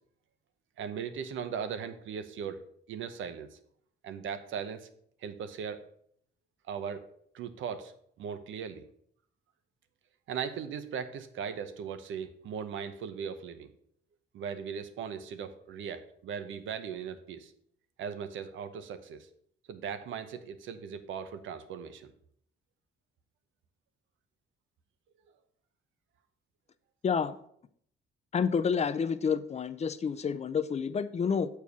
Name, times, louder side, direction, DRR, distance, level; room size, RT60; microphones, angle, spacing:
voice 1, 0.8-2.6 2.9-3.6 4.0-4.9 5.2-5.8 6.7-7.0 7.3-7.9 8.2-8.8 10.3-13.7 14.3-17.5 18.0-19.3 19.7-22.1, right 7 dB, 75° right, 11 dB, 0.8 m, -38 dB
voice 2, 27.0-27.3 28.3-31.5, left 6 dB, 35° left, 13 dB, 0.5 m, -29 dB
7.0 x 4.5 x 6.0 m, 0.66 s
cardioid pair, 90°, 20 cm